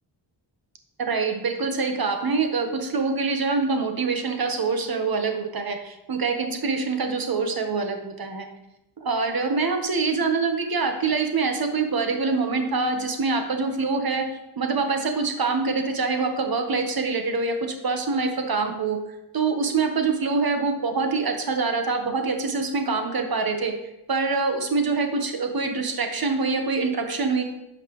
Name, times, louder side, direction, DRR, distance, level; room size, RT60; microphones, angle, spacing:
voice 1, 1.0-8.5 9.0-14.3 14.6-19.0 19.3-23.7 24.1-27.4, right 4 dB, 50° right, 5 dB, 1.1 m, -25 dB
11.0 x 5.8 x 3.1 m, 0.92 s
wide cardioid pair, 115°, 45 cm